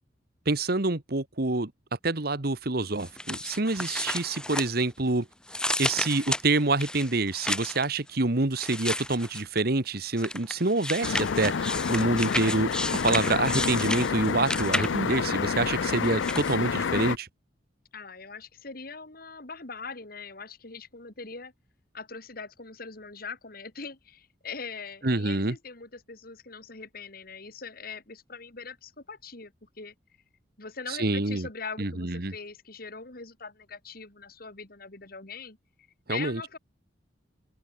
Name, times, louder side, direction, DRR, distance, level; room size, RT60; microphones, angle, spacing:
voice 1, 0.4-1.7 2.0-5.3 5.8-12.7 13.0-17.3 25.0-25.6 30.9-31.5 31.8-32.3 36.1-36.4, right 2 dB, 55° right, 1.5 m, -27 dB
sound 1, 3.0-5.1 5.5-7.9 8.6-9.6 10.2-15.2 15.8-16.6, left 1 dB, 5° left, 0.9 m, -32 dB
sound 2, 11.0-17.2, left 6 dB, 85° left, 0.5 m, -29 dB
voice 2, 17.9-21.5 21.9-29.9 30.6-35.6 36.1-36.6, left 5 dB, 50° left, 2.7 m, -41 dB
open air
head